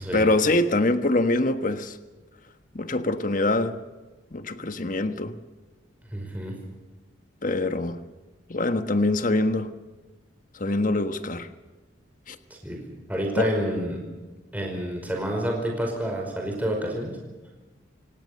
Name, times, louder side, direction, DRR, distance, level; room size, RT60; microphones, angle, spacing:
voice 1, 0.0-2.0 2.7-3.8 4.3-5.4 7.4-8.0 8.5-9.7 10.5-11.5 12.3-12.4 13.4-13.5, left 2 dB, 45° left, 9 dB, 1.4 m, -24 dB
voice 2, 6.1-6.5 12.5-12.8 13.1-14.0 14.5-17.2, equal, 10° right, 0 dB, 5.1 m, -28 dB
28.5 x 18.0 x 6.7 m, 1.2 s
head